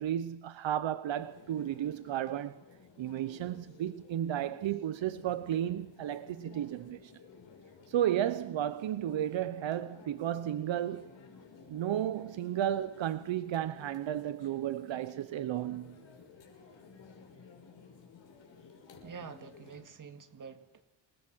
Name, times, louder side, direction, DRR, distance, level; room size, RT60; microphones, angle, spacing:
voice 1, 0.0-2.6 3.0-7.1 7.9-11.1 11.7-16.0, right 11 dB, 80° right, 0.9 m, -33 dB
sound 1, 1.1-19.8, left 5 dB, 70° left, 6.2 m, -55 dB
voice 2, 19.0-20.8, right 6 dB, 45° right, 2.2 m, -47 dB
28.0 x 20.5 x 6.3 m
wide cardioid pair, 175°, 45 cm